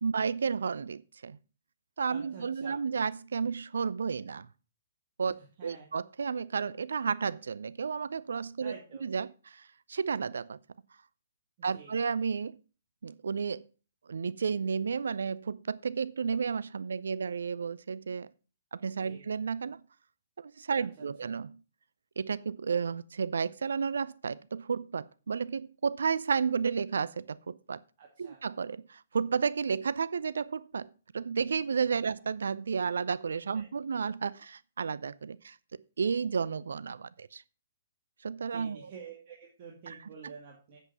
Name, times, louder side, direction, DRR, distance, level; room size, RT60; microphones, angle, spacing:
voice 1, 0.0-1.4 2.0-4.5 5.2-8.7 9.0-10.6 11.6-12.6 13.0-13.7 14.1-18.3 18.7-19.8 20.4-21.6 22.2-27.8 28.2-35.6 36.0-37.4 38.2-38.9 39.9-40.0 40.2-40.3, right 5 dB, 70° right, 0.5 m, -32 dB
voice 2, 2.0-2.8 5.6-5.9 8.6-9.0 11.7-11.9 19.0-19.2 20.8-21.3 28.0-28.4 32.1-32.2 33.5-33.7 38.5-40.8, right 6 dB, 40° right, 2.6 m, -49 dB
8.2 x 7.9 x 5.9 m
figure-of-eight pair, 125°, 0 cm